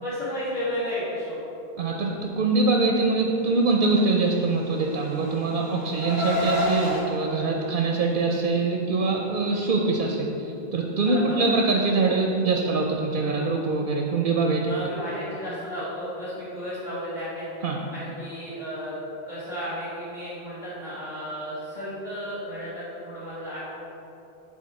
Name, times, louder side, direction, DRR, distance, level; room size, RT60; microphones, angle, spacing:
voice 1, 0.0-1.4 11.1-11.5 14.7-17.5 17.9-19.0 19.3-23.6, equal, 40° left, -11 dB, 1.7 m, -33 dB
voice 2, 1.8-14.7 17.6-17.8, right 3 dB, 55° right, 1 dB, 0.7 m, -24 dB
Car, 4.5-7.0, left 1 dB, 65° left, 1.3 m, -29 dB
9.4 x 4.1 x 4.2 m, 3.0 s
omnidirectional pair, 1.1 m